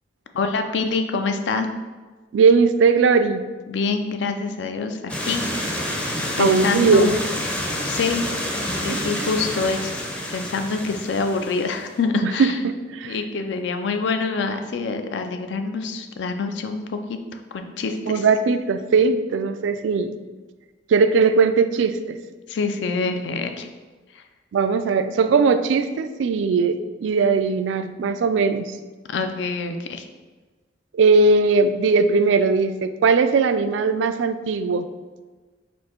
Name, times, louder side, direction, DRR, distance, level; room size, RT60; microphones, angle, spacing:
voice 1, 0.3-1.7 3.7-5.4 6.4-7.1 7.8-8.2 8.7-9.9 10.3-12.6 13.1-18.2 22.5-23.7 24.2-24.3 29.1-30.1, left 4 dB, 70° left, 7 dB, 0.4 m, -26 dB
voice 2, 2.3-3.4 6.4-7.1 8.9-9.0 12.2-13.2 18.1-20.1 20.9-22.2 24.5-28.7 31.0-34.9, right 4 dB, 80° right, 10 dB, 0.3 m, -19 dB
sound 1, 5.1-12.0, left 1 dB, 5° left, 0.5 m, -28 dB
4.3 x 2.6 x 4.4 m, 1.3 s
head